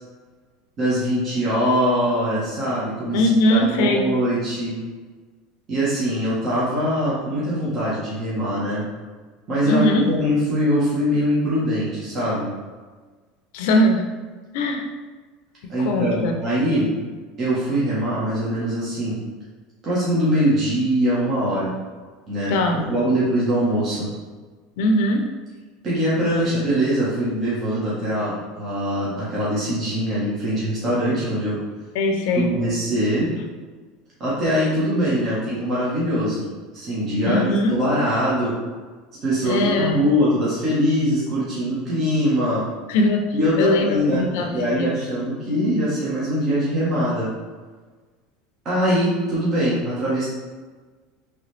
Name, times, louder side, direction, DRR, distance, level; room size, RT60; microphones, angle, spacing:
voice 1, 0.8-3.2 3.5-4.8 5.7-8.8 9.5-12.5 15.7-16.9 17.4-19.2 19.8-21.7 22.3-24.1 25.8-31.6 32.3-33.3 34.2-36.4 36.7-38.6 39.2-42.7 43.3-44.3 44.5-47.3 48.6-50.3, equal, 35° right, -9 dB, 1.4 m, -22 dB
voice 2, 3.1-4.1 9.6-10.1 13.5-14.0 14.5-14.9 15.6-16.4 22.5-22.8 24.8-25.3 31.9-32.5 37.2-37.8 39.4-40.0 42.9-45.0, left 1 dB, 75° left, 3 dB, 0.6 m, -21 dB
3.7 x 3.2 x 3.3 m, 1.4 s
supercardioid pair, 125°, 0 cm